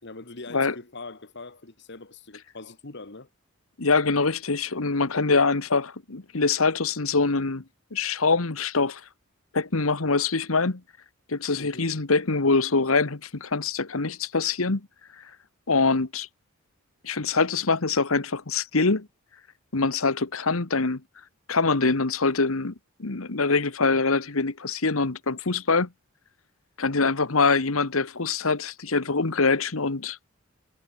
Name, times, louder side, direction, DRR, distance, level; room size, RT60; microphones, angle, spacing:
voice 1, 0.0-3.3 11.6-12.0, left 3 dB, 55° left, 1.9 m, -42 dB
voice 2, 3.8-7.6 7.9-9.0 9.5-10.8 11.3-14.9 15.2-15.3 15.7-16.3 17.0-19.1 19.7-21.0 21.5-22.7 23.0-25.9 26.8-30.2, left 4 dB, 90° left, 1.5 m, -24 dB
head